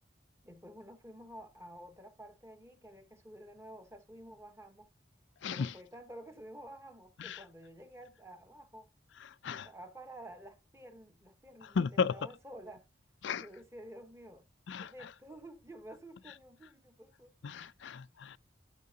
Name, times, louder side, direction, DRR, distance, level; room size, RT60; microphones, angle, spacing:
voice 1, 0.4-4.9 5.5-8.9 9.5-12.9 13.3-14.5 14.8-17.7, right 1 dB, 15° right, 1.0 m, -51 dB
voice 2, 5.4-5.7 7.2-7.4 9.4-9.7 11.8-12.1 13.2-13.5 14.7-14.9 17.4-18.4, left 5 dB, 70° left, 0.4 m, -34 dB
12.0 x 6.4 x 2.8 m
head